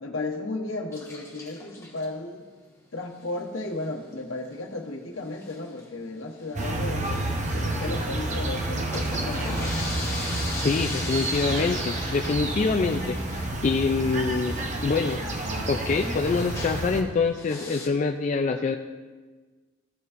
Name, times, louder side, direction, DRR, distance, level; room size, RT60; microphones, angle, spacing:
voice 1, 0.0-2.5 2.9-7.2 7.5-9.6, left 2 dB, 75° left, 2 dB, 1.1 m, -34 dB
sound 1, 0.9-2.1 3.3-3.6 3.8-3.9 4.1-4.2 4.5-4.6 5.2-5.8 6.3-8.2 8.7-17.0 17.4-17.9, left 2 dB, 15° left, 1.2 m, -39 dB
sound 2, 6.6-17.0, right 1 dB, 35° right, 0.8 m, -29 dB
voice 2, 10.5-14.6 14.8-15.2 15.7-18.8, left 4 dB, 35° left, 4 dB, 0.3 m, -25 dB
14.5 x 6.8 x 2.5 m, 1.3 s
head